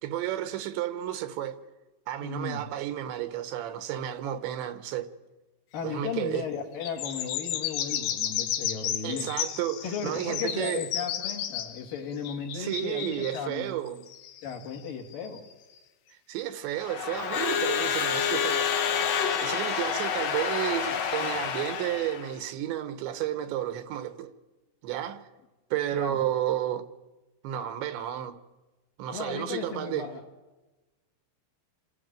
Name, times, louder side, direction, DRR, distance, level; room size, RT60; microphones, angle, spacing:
voice 1, 0.0-1.6 2.1-5.1 5.8-6.5 9.0-10.9 12.5-14.1 16.3-18.7 19.4-24.3 24.8-25.3 25.7-26.9 27.4-28.4 29.0-30.1, right 12 dB, 75° right, 3.5 m, -32 dB
voice 2, 2.2-2.6 5.7-9.3 9.8-13.7 14.4-15.4 25.9-26.2 29.1-30.2, left 6 dB, 50° left, 4.0 m, -35 dB
sound 1, 6.8-13.4 14.1-15.5, left 10 dB, 85° left, 4.0 m, -33 dB
Crowd / Alarm, 16.8-22.3, left 7 dB, 65° left, 1.6 m, -28 dB
29.0 x 21.0 x 9.2 m
omnidirectional pair, 5.3 m